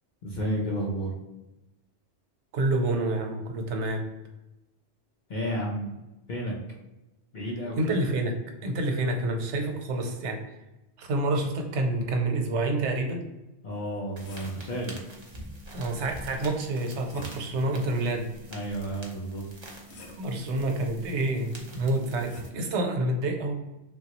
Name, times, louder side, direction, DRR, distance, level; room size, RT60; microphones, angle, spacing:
voice 1, 0.2-1.2 5.3-6.0 6.3-6.6 7.3-7.8 13.6-15.0 18.5-19.5, equal, 55° left, -3 dB, 0.6 m, -31 dB
voice 2, 2.5-4.0 7.8-8.4 8.6-10.4 11.0-13.2 15.7-18.3 20.2-23.5, right 2 dB, 85° right, 4 dB, 0.9 m, -28 dB
sound 1, 13.7-14.7 16.4-17.7 19.1-20.4 21.7-22.6, equal, 75° left, 0.9 m, -47 dB
sound 2, 14.2-22.5, right 1 dB, 35° right, 0.5 m, -46 dB
3.3 x 2.3 x 2.8 m, 0.98 s
omnidirectional pair, 1.1 m